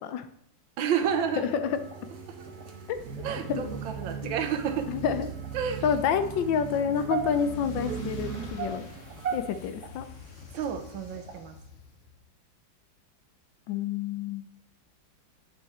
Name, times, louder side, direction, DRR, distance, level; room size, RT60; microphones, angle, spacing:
voice 1, 0.8-1.5 2.3-2.4 3.2-5.0 5.5-5.8 10.5-11.6, right 7 dB, 85° right, 7 dB, 1.6 m, -30 dB
sound 1, 1.0-9.4, right 5 dB, 60° right, 1.5 m, -39 dB
voice 2, 1.4-1.8 3.5-3.6 4.2-4.3 4.9-5.3 5.8-8.9 9.3-10.1 13.7-14.5, left 7 dB, 80° left, 10 dB, 1.4 m, -28 dB
sound 2, 1.7-11.4, right 6 dB, 40° right, 1.6 m, -41 dB
sound 3, 6.9-12.3, left 5 dB, 55° left, 1.0 m, -48 dB
8.5 x 5.8 x 4.2 m, 0.71 s
omnidirectional pair, 2.0 m